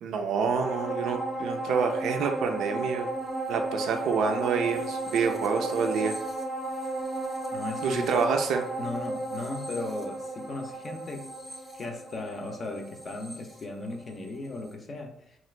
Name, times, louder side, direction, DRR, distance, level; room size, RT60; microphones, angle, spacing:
voice 1, 0.0-3.1 3.5-6.1 7.8-8.6, right 5 dB, 80° right, 4 dB, 0.3 m, -27 dB
sound 1, 0.6-14.3 14.7-14.8, right 2 dB, 10° right, 0.7 m, -34 dB
voice 2, 7.5-8.2 8.8-11.3 11.7-15.4, left 2 dB, 40° left, 4 dB, 0.5 m, -37 dB
2.9 x 2.4 x 3.1 m, 0.76 s
cardioid pair, 100°, 0 cm